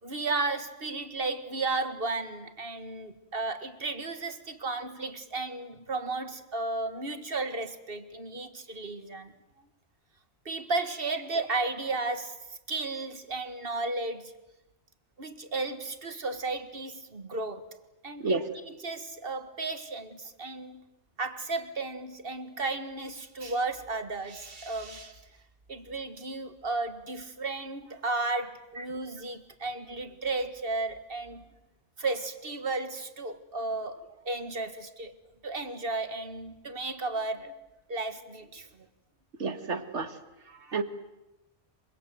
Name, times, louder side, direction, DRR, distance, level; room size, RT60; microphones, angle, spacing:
voice 1, 0.0-9.3 10.5-14.3 15.2-17.7 18.0-20.8 21.2-25.2 25.7-31.5 32.0-35.1 35.4-37.6 37.9-38.9 40.4-40.8, right 3 dB, 50° right, 9 dB, 2.0 m, -34 dB
voice 2, 39.4-40.1 40.7-40.8, right 3 dB, 70° right, 9 dB, 2.0 m, -29 dB
27.0 x 25.0 x 7.9 m, 0.95 s
omnidirectional pair, 1.2 m